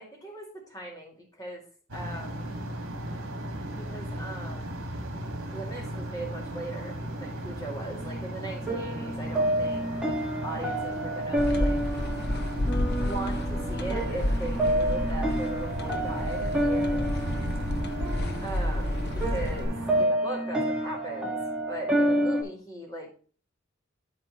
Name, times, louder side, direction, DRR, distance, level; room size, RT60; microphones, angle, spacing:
voice 1, 0.0-1.6 1.9-2.5 3.7-4.8 5.5-9.9 10.4-11.8 13.0-17.1 18.4-21.4 21.7-23.1, right 2 dB, 15° left, -1 dB, 2.2 m, -39 dB
sound 1, 1.9-20.0, right 1 dB, 60° right, 1.8 m, -37 dB
sound 2, 8.0-22.4, right 1 dB, 5° right, 1.5 m, -29 dB
sound 3, 11.4-19.6, left 1 dB, 50° left, 0.7 m, -31 dB
12.5 x 4.3 x 3.0 m, 0.41 s
head